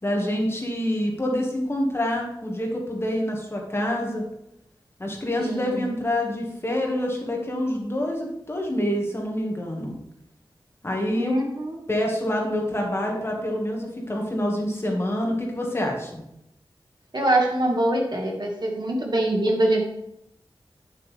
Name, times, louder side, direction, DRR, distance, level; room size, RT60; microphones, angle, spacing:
voice 1, 0.0-4.2 5.0-9.9 10.8-11.4 11.9-16.2, left 1 dB, 30° left, 0 dB, 1.8 m, -26 dB
voice 2, 5.4-5.9 11.1-11.8 17.1-19.8, right 1 dB, 55° right, 0 dB, 1.9 m, -24 dB
8.7 x 7.6 x 3.4 m, 0.80 s
wide cardioid pair, 100°, 9 cm